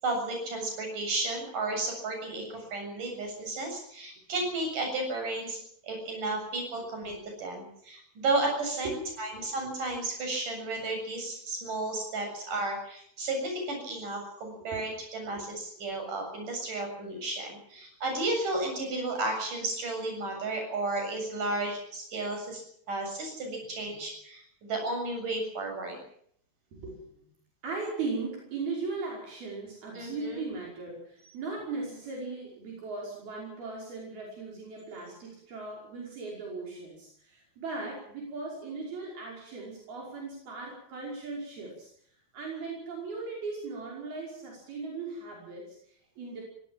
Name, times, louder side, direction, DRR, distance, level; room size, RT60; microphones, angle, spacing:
voice 1, 0.0-5.6 5.8-22.6 22.9-26.0 30.0-30.4, right 2 dB, 55° right, 3 dB, 9.0 m, -33 dB
voice 2, 8.8-9.5 15.3-15.5 23.6-24.0 26.7-27.3 27.6-41.9 42.3-46.4, right 3 dB, 70° right, -2 dB, 7.3 m, -38 dB
24.5 x 17.5 x 7.5 m, 0.67 s
omnidirectional pair, 4.5 m